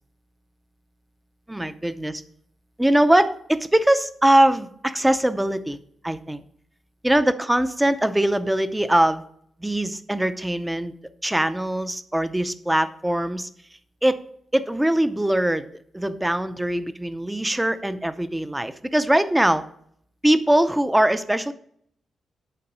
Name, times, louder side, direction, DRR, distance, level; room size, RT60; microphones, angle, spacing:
voice 1, 1.5-2.2 2.8-5.8 6.0-6.4 7.0-9.2 9.6-10.9 11.2-13.5 14.0-14.2 14.5-15.7 15.9-19.6 20.2-21.5, right 1 dB, 5° right, 12 dB, 0.5 m, -21 dB
8.7 x 4.0 x 6.1 m, 0.65 s
wide cardioid pair, 145°, 0 cm